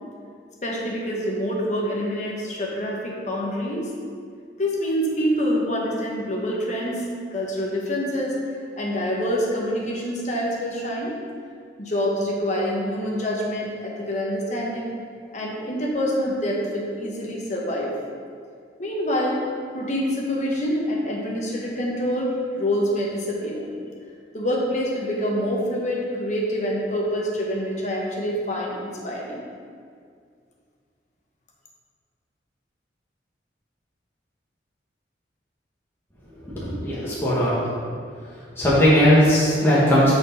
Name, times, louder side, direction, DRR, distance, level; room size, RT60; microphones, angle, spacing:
voice 1, 0.6-3.9 4.6-8.3 8.8-11.2 11.8-14.9 15.3-17.9 18.8-19.5 19.7-23.7 24.3-29.4, equal, 40° left, -2 dB, 1.2 m, -26 dB
voice 2, 36.4-37.5 38.6-40.1, equal, 15° left, -9 dB, 1.4 m, -18 dB
6.4 x 4.5 x 5.3 m, 2.2 s
head